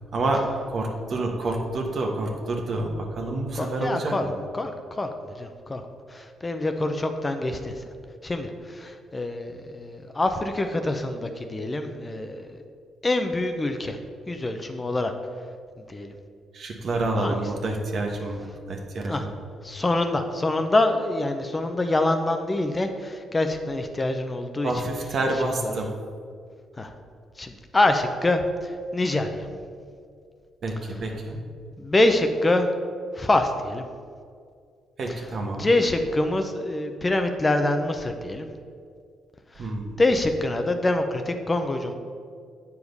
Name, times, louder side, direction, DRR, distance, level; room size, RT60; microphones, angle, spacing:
voice 1, 0.1-4.1 16.5-19.3 24.6-25.9 30.6-31.4 35.0-35.7 39.6-40.0, right 2 dB, 55° right, 2 dB, 1.2 m, -28 dB
voice 2, 3.5-4.3 4.5-5.8 6.1-7.8 8.2-12.6 13.0-14.0 14.3-15.1 15.9-16.1 17.2-17.4 19.0-19.3 19.6-24.7 25.3-25.8 26.8-26.9 27.4-29.5 30.8-31.0 31.8-32.7 33.1-33.8 35.1-38.5 39.6-39.7 40.0-41.9, left 2 dB, 20° left, 6 dB, 0.6 m, -25 dB
8.1 x 5.0 x 5.3 m, 2.2 s
cardioid pair, 90°, 0 cm